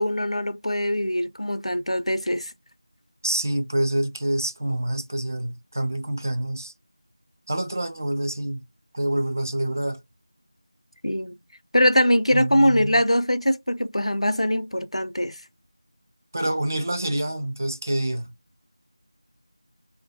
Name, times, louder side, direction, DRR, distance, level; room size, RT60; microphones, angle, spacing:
voice 1, 0.0-2.5 11.0-11.4 11.7-15.4, equal, 85° left, 0.5 m, -22 dB
voice 2, 3.2-6.7 7.5-8.6 8.9-10.0 12.3-13.0 16.3-18.3, right 1 dB, 30° right, 0.4 m, -27 dB
4.5 x 2.2 x 2.6 m
figure-of-eight pair, 170°, 3 cm